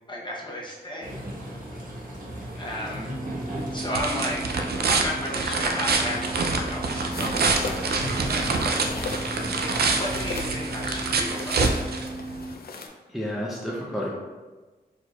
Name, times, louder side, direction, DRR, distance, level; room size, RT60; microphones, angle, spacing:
voice 1, 0.1-1.2 2.6-3.2 3.7-4.5 4.9-11.9, equal, 30° left, -3 dB, 0.8 m, -34 dB
sound 1, 1.0-11.2, equal, 60° right, 1.2 m, -37 dB
sound 2, 3.1-12.5, right 4 dB, 75° right, 0.4 m, -27 dB
sound 3, 7.1-12.9, left 4 dB, 70° left, 0.4 m, -37 dB
voice 2, 13.1-14.1, equal, ahead, -4 dB, 0.5 m, -30 dB
4.5 x 4.1 x 2.3 m, 1.2 s
wide cardioid pair, 125°, 16 cm